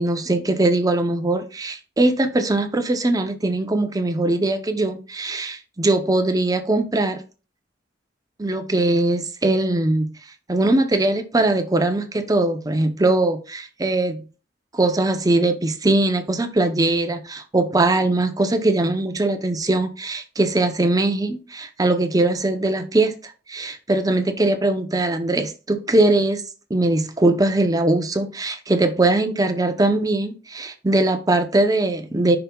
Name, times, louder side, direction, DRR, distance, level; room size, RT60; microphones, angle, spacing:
voice 1, 0.0-7.2 8.4-10.1 10.5-14.2 14.7-26.4 26.7-32.4, right 2 dB, 20° right, 0.7 m, -21 dB
8.8 x 5.9 x 2.3 m
head